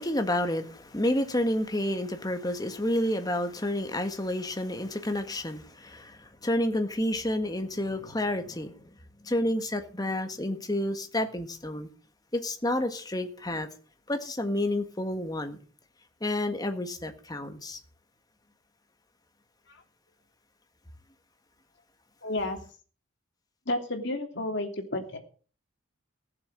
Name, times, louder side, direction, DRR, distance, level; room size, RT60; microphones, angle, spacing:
voice 1, 0.0-8.7 9.2-11.9 12.3-13.7 14.1-15.6 16.2-17.8, left 1 dB, 20° left, 1.6 m, -30 dB
voice 2, 22.2-22.6 23.7-25.2, left 1 dB, 55° left, 2.9 m, -31 dB
16.0 x 7.3 x 7.5 m
head